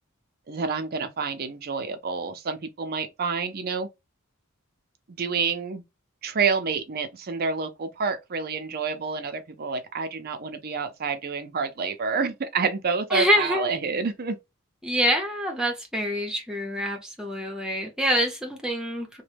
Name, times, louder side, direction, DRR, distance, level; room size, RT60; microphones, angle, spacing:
voice 1, 0.5-3.9 5.1-5.8 6.2-14.4, right 5 dB, 45° right, 0.5 m, -28 dB
voice 2, 13.1-13.7 14.8-19.2, equal, 5° right, 0.8 m, -26 dB
3.0 x 2.1 x 3.3 m
head